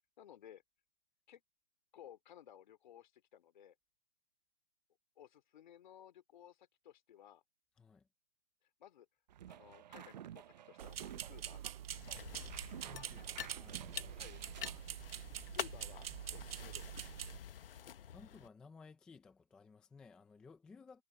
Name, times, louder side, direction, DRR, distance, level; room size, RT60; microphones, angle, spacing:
voice 1, 0.2-0.6 1.3-1.4 1.9-3.7 5.2-7.4 8.6-9.1 9.5-11.6 14.2-14.4 15.5-17.0, left 10 dB, 50° left, 2.9 m, -57 dB
voice 2, 7.8-8.1 12.8-13.9 18.1-21.0, left 4 dB, 5° left, 0.5 m, -58 dB
sound 1, 9.3-14.8, right 11 dB, 45° right, 0.9 m, -53 dB
sound 2, 10.8-17.4, right 10 dB, 90° right, 0.6 m, -45 dB
sound 3, 11.9-18.5, left 9 dB, 70° left, 1.0 m, -48 dB
hypercardioid pair, 160°, 29 cm